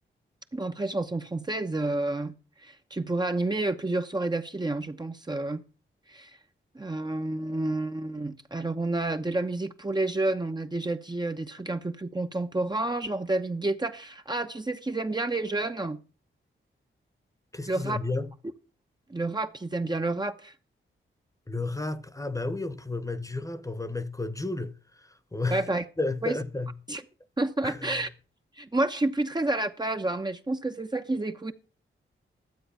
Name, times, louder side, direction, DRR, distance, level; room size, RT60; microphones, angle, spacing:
voice 1, 0.5-2.3 2.6-5.6 6.1-6.3 6.7-16.0 17.7-18.0 19.1-20.5 25.5-25.8 26.2-26.4 26.9-27.0 27.4-28.1 28.6-31.5, right 2 dB, 20° right, 0.9 m, -29 dB
voice 2, 17.5-18.3 21.5-24.7 25.3-25.6 26.0-26.7 27.6-27.8, left 2 dB, 15° left, 1.2 m, -31 dB
12.5 x 7.8 x 5.7 m
cardioid pair, 65°, 21 cm